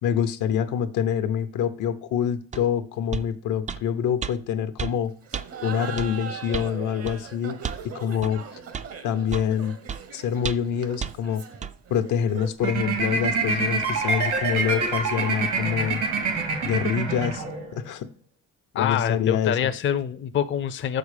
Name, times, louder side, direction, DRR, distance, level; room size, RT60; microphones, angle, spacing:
voice 1, 0.0-5.1 5.6-7.6 7.8-8.4 9.0-9.8 10.1-11.4 11.9-16.0 16.6-17.4 17.7-18.1 18.7-19.6, left 8 dB, 80° left, 9 dB, 0.8 m, -26 dB
sound 1, 2.5-2.7 3.1-3.3 3.7-3.8 4.2-4.3 4.8-5.0 5.3-5.5 6.0-6.1 6.5-6.7 7.1-7.2 7.6-7.8 8.2-8.3 8.7-8.9 9.3-9.5 9.9-10.0 10.4-10.7 11.0-11.1 11.6-11.7, right 7 dB, 25° right, 0.3 m, -32 dB
Laughter, 5.2-12.7, right 7 dB, 55° right, 0.9 m, -40 dB
sound 2, 12.6-17.9, right 4 dB, 80° right, 2.0 m, -26 dB
voice 2, 18.7-21.0, left 9 dB, 40° left, 10 dB, 0.5 m, -25 dB
6.6 x 5.0 x 4.9 m, 0.42 s
cardioid pair, 90°, 30 cm